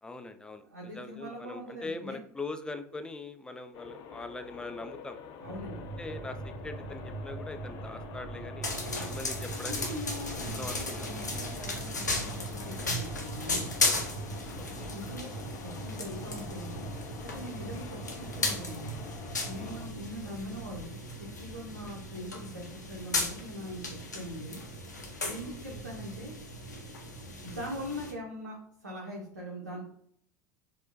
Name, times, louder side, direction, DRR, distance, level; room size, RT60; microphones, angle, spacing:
voice 1, 0.0-5.2 6.0-9.9 10.5-11.1 14.5-14.9 19.6-19.8 25.4-25.8, left 2 dB, 10° left, 7 dB, 0.4 m, -42 dB
voice 2, 0.7-2.2 5.4-5.8 8.8-9.2 9.6-13.8 14.7-16.9 17.2-19.0 19.5-20.8 21.1-24.6 25.3-26.3 27.4-29.8, equal, 90° right, -2 dB, 0.6 m, -42 dB
sound 1, 3.7-19.9, left 7 dB, 50° left, 0.6 m, -46 dB
sound 2, 5.4-18.9, right 3 dB, 20° right, 1.1 m, -43 dB
sound 3, 8.6-28.1, left 2 dB, 90° left, 0.6 m, -36 dB
4.3 x 2.1 x 2.5 m, 0.65 s
figure-of-eight pair, 75°, 9 cm